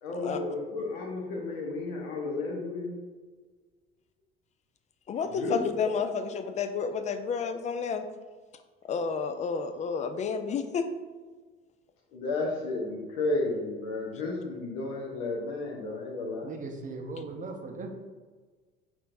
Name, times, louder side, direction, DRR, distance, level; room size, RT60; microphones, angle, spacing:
voice 1, 0.0-3.0 5.2-5.9 12.1-16.5, left 2 dB, 60° left, -1 dB, 1.0 m, -33 dB
voice 2, 5.1-8.1 8.9-10.9, left 5 dB, 25° left, 9 dB, 0.4 m, -30 dB
voice 3, 16.4-17.9, right 3 dB, 25° right, 3 dB, 0.7 m, -38 dB
5.9 x 3.1 x 2.6 m, 1.4 s
figure-of-eight pair, 60°, 31 cm